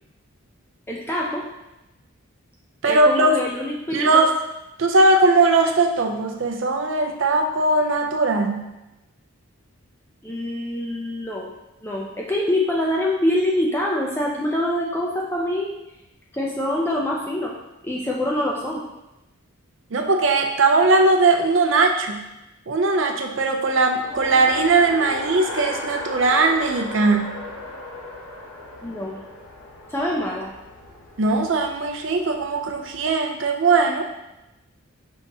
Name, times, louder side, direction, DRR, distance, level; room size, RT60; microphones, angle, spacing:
voice 1, 0.9-1.4 2.9-4.2 10.2-11.5 11.8-15.7 16.3-17.5 17.8-18.8 28.8-29.2 29.9-30.5, left 1 dB, 10° left, -3 dB, 0.4 m, -25 dB
voice 2, 2.8-3.4 3.9-4.3 4.8-8.7 19.9-22.3 22.7-27.4 31.2-34.0, right 3 dB, 60° right, 3 dB, 0.5 m, -19 dB
Race car auto racing, 24.0-33.1, left 2 dB, 80° left, 0.9 m, -36 dB
5.3 x 2.8 x 3.5 m, 0.95 s
head